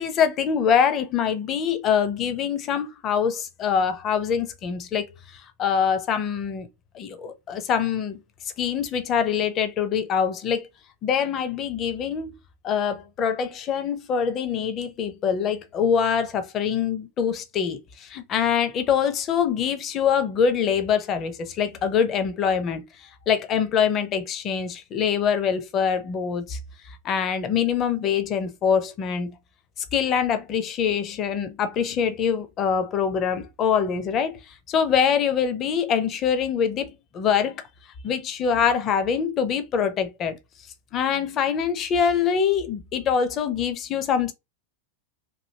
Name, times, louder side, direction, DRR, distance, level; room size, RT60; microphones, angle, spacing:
voice 1, 0.0-6.7 6.9-10.7 11.0-12.4 12.6-26.6 26.8-29.4 29.9-37.6 38.0-40.4 40.9-44.3, left 7 dB, 30° left, 0.6 m, -24 dB
3.1 x 2.5 x 2.8 m
figure-of-eight pair, 90°, 0 cm